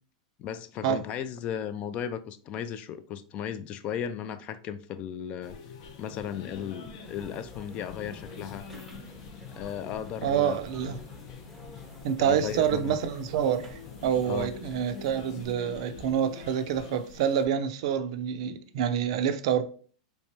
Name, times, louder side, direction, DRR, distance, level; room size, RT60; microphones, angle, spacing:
voice 1, 0.4-5.6 6.0-8.7 9.6-10.9 12.2-13.0 14.3-14.5, left 8 dB, 35° left, 0.3 m, -36 dB
sound 1, 5.4-17.5, left 5 dB, 60° left, 0.7 m, -45 dB
sound 2, 7.0-15.5, left 2 dB, ahead, 0.6 m, -50 dB
voice 2, 10.2-11.0 12.0-19.6, right 9 dB, 60° right, 0.4 m, -27 dB
3.5 x 3.0 x 2.8 m
supercardioid pair, 140°, 4 cm